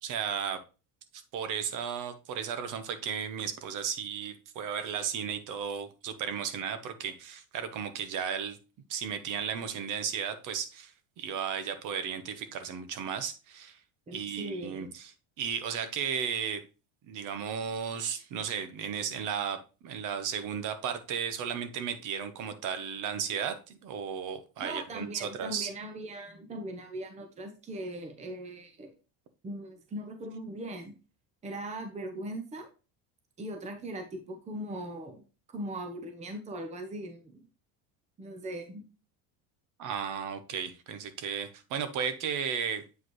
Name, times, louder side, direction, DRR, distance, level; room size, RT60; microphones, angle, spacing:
voice 1, 0.0-0.6 1.1-8.6 8.9-13.8 14.1-16.6 17.1-25.7 39.8-42.8, right 7 dB, 50° right, 11 dB, 1.1 m, -34 dB
voice 2, 14.1-14.9 24.6-28.9 29.4-30.9 31.4-32.7 33.4-35.2 35.5-37.5 38.2-38.8, right 1 dB, 15° right, 6 dB, 0.9 m, -39 dB
8.2 x 4.9 x 3.1 m, 0.32 s
cardioid pair, 160°, 41 cm